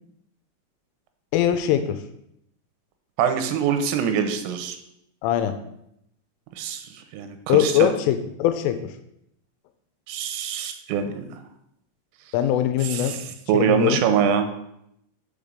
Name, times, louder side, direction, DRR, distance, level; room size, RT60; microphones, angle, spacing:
voice 1, 1.3-2.0 5.2-5.6 7.5-8.9 12.3-13.2 13.5-14.0, left 10 dB, 85° left, 9 dB, 3.0 m, -21 dB
voice 2, 3.2-4.8 6.6-7.9 10.1-11.3 12.8-14.5, right 7 dB, 85° right, 7 dB, 3.4 m, -24 dB
7.2 x 5.3 x 6.6 m, 0.76 s
omnidirectional pair, 5.9 m